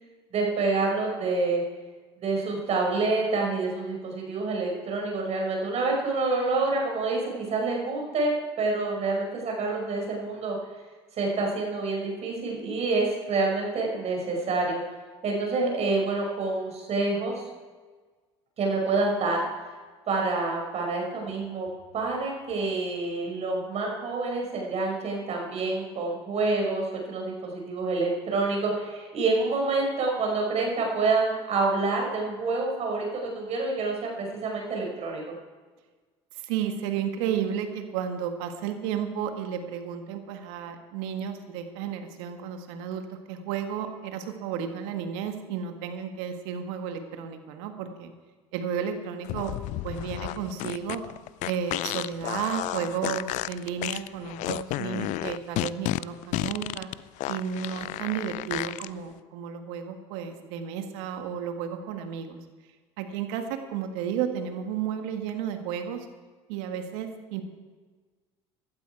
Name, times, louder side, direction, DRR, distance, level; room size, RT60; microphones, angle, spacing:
voice 1, 0.3-1.6 2.2-8.3 8.6-10.5 11.2-14.8 15.2-17.4 18.6-19.4 20.1-21.7 21.9-35.4, right 3 dB, 50° right, 0 dB, 5.8 m, -27 dB
voice 2, 36.3-48.1 48.5-49.5 49.8-51.0 51.4-56.9 57.3-62.4 63.0-66.1 66.5-67.4, right 8 dB, 75° right, 6 dB, 1.7 m, -32 dB
sound 1, 49.2-58.9, left 17 dB, 60° left, 0.4 m, -32 dB
17.0 x 12.5 x 4.7 m, 1.4 s
hypercardioid pair, 70°, 14 cm